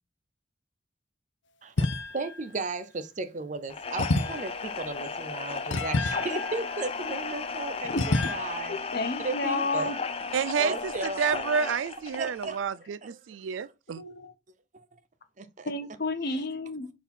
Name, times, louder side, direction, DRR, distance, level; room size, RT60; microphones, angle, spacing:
voice 1, 1.6-8.7 9.2-10.0 10.6-11.5 12.2-12.6 13.0-13.1 14.7-14.8 15.4-15.7, right 3 dB, 40° right, 0.7 m, -35 dB
sound 1, 1.8-2.4 4.0-7.4 8.0-8.4, left 2 dB, 75° left, 0.7 m, -30 dB
sound 2, 3.7-12.6, left 5 dB, 30° left, 0.5 m, -35 dB
voice 2, 7.8-8.3 8.7-10.0 14.0-14.3 15.6-16.9, left 3 dB, 55° left, 1.0 m, -31 dB
voice 3, 10.3-14.0, right 6 dB, 90° right, 0.4 m, -29 dB
4.6 x 4.1 x 5.3 m
head